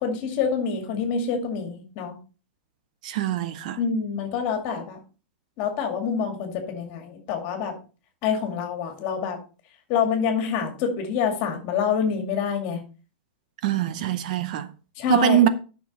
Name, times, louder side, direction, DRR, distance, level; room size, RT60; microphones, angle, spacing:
voice 1, 0.0-2.2 3.8-5.0 5.6-7.7 8.2-9.4 9.9-12.8 15.0-15.4, left 6 dB, 30° left, 2.2 m, -26 dB
voice 2, 3.0-3.8 13.6-14.7 15.1-15.5, right 11 dB, 45° right, 0.7 m, -23 dB
11.0 x 6.0 x 4.1 m
supercardioid pair, 175°, 6 cm